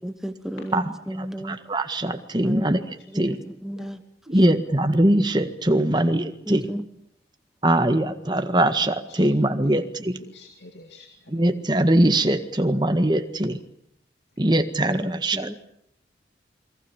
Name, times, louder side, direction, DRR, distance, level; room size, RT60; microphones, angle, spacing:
voice 1, 0.0-1.6 2.4-2.8 3.1-4.0 4.3-4.4 5.8-5.9 6.4-6.9 14.9-15.6, equal, 5° right, 9 dB, 1.2 m, -34 dB
voice 2, 1.5-2.8 3.1-3.4 4.3-6.6 7.6-10.2 11.3-13.6 14.4-15.6, right 1 dB, 25° right, 8 dB, 1.7 m, -21 dB
voice 3, 10.3-11.4, left 2 dB, 80° left, 6 dB, 2.4 m, -47 dB
28.5 x 22.5 x 7.2 m, 0.71 s
head